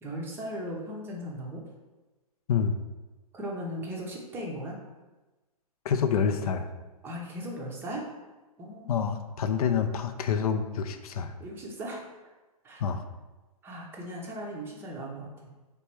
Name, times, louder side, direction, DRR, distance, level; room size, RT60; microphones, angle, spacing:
voice 1, 0.0-1.6 3.3-4.8 7.0-8.0 8.6-9.0 11.4-12.0 12.6-12.8 13.6-15.3, equal, 10° right, -2 dB, 0.5 m, -37 dB
voice 2, 5.8-6.7 8.9-11.3 12.8-13.0, left 6 dB, 70° left, 8 dB, 0.4 m, -27 dB
3.4 x 3.0 x 4.4 m, 1.2 s
hypercardioid pair, 150°, 19 cm